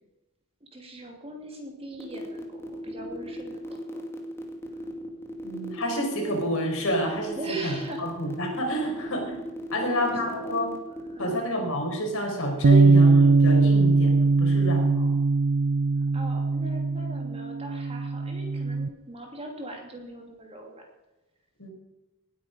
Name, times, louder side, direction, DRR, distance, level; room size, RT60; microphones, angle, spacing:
voice 1, 0.6-4.0 7.4-8.3 9.7-10.5 10.9-11.4 16.1-20.8, right 1 dB, 25° right, 1 dB, 2.8 m, -41 dB
sound 1, 2.0-11.3, equal, 10° left, 2.1 m, -37 dB
voice 2, 5.4-9.4 9.7-10.7 11.2-15.2 21.6-21.7, equal, 65° left, 2 dB, 4.6 m, -29 dB
Bass guitar, 12.6-18.9, right 3 dB, 55° right, 0.6 m, -21 dB
18.5 x 9.4 x 5.2 m, 1.1 s
head